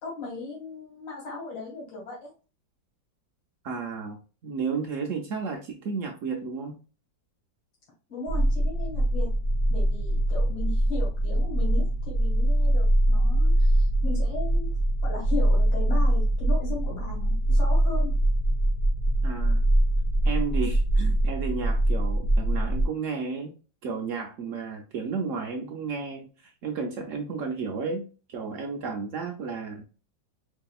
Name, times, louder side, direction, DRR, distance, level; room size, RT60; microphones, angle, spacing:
voice 1, 0.0-2.3 8.1-9.3 9.7-14.7 15.0-18.1, left 3 dB, 90° left, -3 dB, 2.5 m, -37 dB
voice 2, 3.6-4.2 4.4-6.8 19.2-19.6 20.2-23.5 23.8-29.8, right 5 dB, 75° right, 2 dB, 0.7 m, -33 dB
sound 1, 8.3-22.9, right 1 dB, 50° left, 1.1 m, -23 dB
4.8 x 2.7 x 2.3 m, 0.34 s
omnidirectional pair, 2.0 m